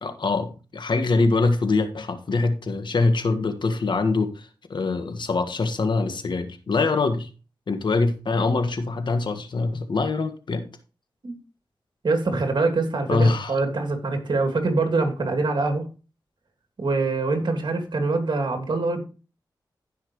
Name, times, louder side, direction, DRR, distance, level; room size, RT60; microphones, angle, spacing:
voice 1, 0.0-7.3 7.7-10.6 13.1-13.6, left 3 dB, 70° left, 8 dB, 1.6 m, -24 dB
voice 2, 12.0-15.9 16.8-19.0, right 3 dB, 65° right, 4 dB, 2.9 m, -24 dB
15.5 x 5.9 x 3.1 m, 0.33 s
cardioid pair, 60°, 8 cm